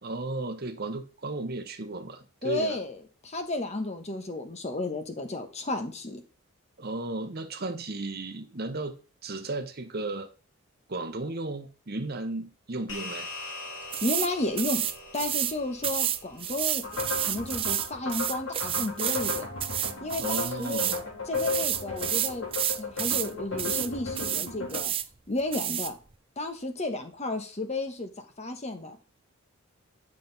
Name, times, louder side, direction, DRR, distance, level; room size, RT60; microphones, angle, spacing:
voice 1, 0.0-2.8 6.8-8.9 9.2-10.3 10.9-13.3 20.2-21.0, right 2 dB, 45° right, 0.9 m, -34 dB
voice 2, 2.4-6.2 14.0-14.8 15.1-16.8 17.2-19.5 20.0-20.8 21.3-22.5 22.7-24.9 25.3-26.0 26.4-28.1 28.4-29.0, left 2 dB, 30° left, 1.1 m, -32 dB
sound 1, 12.9-17.5, left 2 dB, 60° left, 2.3 m, -43 dB
sound 2, 13.9-14.3 14.6-15.5 15.8-21.0 21.3-23.3 23.6-23.9 24.1-25.1 25.5-25.9, right 11 dB, 25° right, 0.4 m, -30 dB
sound 3, 16.8-24.8, left 3 dB, 85° left, 3.3 m, -35 dB
9.3 x 5.9 x 4.0 m
head